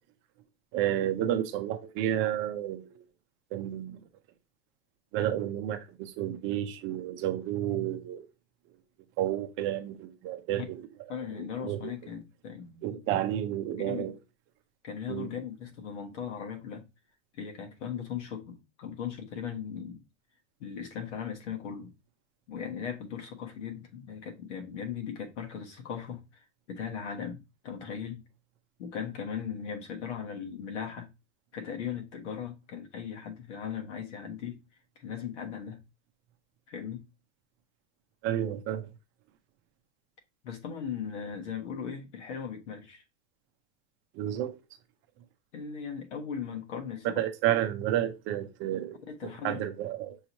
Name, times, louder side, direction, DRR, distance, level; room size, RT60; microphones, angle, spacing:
voice 1, 0.7-3.0 3.5-4.0 5.1-8.3 9.2-10.9 11.3-11.9 12.8-14.2 15.1-15.3 38.2-38.9 44.1-44.6 47.0-50.2, right 12 dB, 35° right, 0.6 m, -31 dB
voice 2, 11.1-13.2 13.9-14.1 14.8-16.9 17.3-20.0 20.6-21.9 22.5-26.2 26.7-28.2 28.8-31.1 31.5-34.6 35.0-35.8 36.7-37.0 40.4-43.0 45.5-47.2 49.1-49.6, left 7 dB, 90° left, 1.5 m, -38 dB
6.3 x 3.0 x 2.8 m
supercardioid pair, 150°, 35 cm